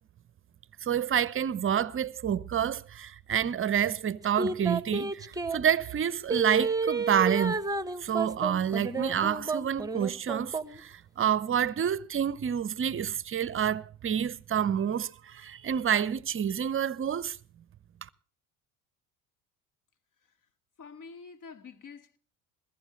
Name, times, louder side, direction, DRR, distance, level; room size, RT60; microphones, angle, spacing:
voice 1, 0.8-7.6 8.0-17.4, right 9 dB, 30° right, 0.8 m, -28 dB
sound 1, 4.4-5.6 6.3-10.8 11.3-11.4, right 3 dB, 10° right, 1.1 m, -31 dB
voice 2, 20.8-22.2, left 5 dB, 45° left, 2.2 m, -47 dB
22.5 x 15.5 x 3.3 m
figure-of-eight pair, 65°, 43 cm